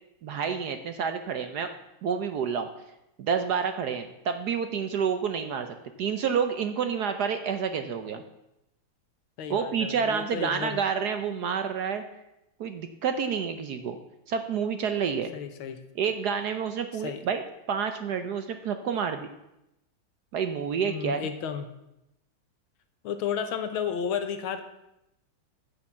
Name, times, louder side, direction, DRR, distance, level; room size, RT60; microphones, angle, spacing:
voice 1, 0.2-1.7 2.0-2.7 3.2-8.2 9.5-12.0 12.6-14.0 14.3-15.3 16.0-17.4 17.7-19.3 20.3-21.3, right 6 dB, 65° right, 8 dB, 1.1 m, -29 dB
voice 2, 9.4-10.8 15.3-15.8 16.9-17.2 20.8-21.7 23.0-24.6, left 7 dB, 80° left, 8 dB, 1.9 m, -32 dB
9.8 x 6.8 x 7.4 m, 0.88 s
omnidirectional pair, 2.3 m